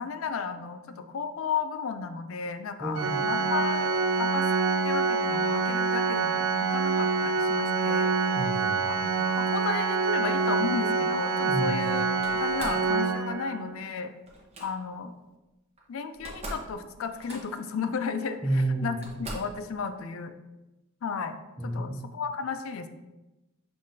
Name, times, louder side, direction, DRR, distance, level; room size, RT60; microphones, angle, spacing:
voice 1, 0.0-3.9 4.2-4.5 4.8-8.1 8.9-12.1 12.3-14.1 14.6-15.1 15.9-20.3 21.0-21.4 21.6-22.9, left 5 dB, 70° left, 9 dB, 0.4 m, -34 dB
voice 2, 2.8-3.3 8.3-8.8 11.5-11.9 18.4-19.1 21.6-22.1, right 1 dB, ahead, -6 dB, 0.5 m, -30 dB
Organ, 3.0-13.8, right 4 dB, 70° right, 0.3 m, -26 dB
Slam, 12.2-12.9 14.3-14.7 15.8-15.9 16.1-16.7 17.0-17.7 18.5-18.6 19.0-19.6, right 1 dB, 30° right, 0.8 m, -40 dB
5.5 x 3.2 x 2.6 m, 1.0 s
head